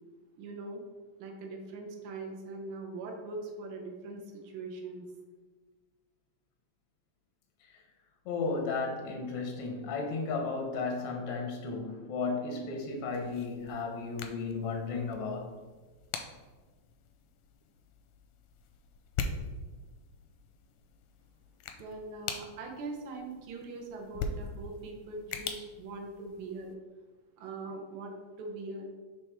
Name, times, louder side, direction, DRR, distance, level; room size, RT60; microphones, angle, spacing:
voice 1, 0.4-0.8 1.2-5.0 21.8-26.7 27.4-28.1 28.4-28.9, right 3 dB, 65° right, 2 dB, 1.4 m, -41 dB
voice 2, 8.3-15.5, left 4 dB, 70° left, 2 dB, 1.4 m, -34 dB
sound 1, 13.1-26.7, left 5 dB, 90° left, 2.1 m, -43 dB
7.1 x 3.5 x 4.5 m, 1.3 s
omnidirectional pair, 3.4 m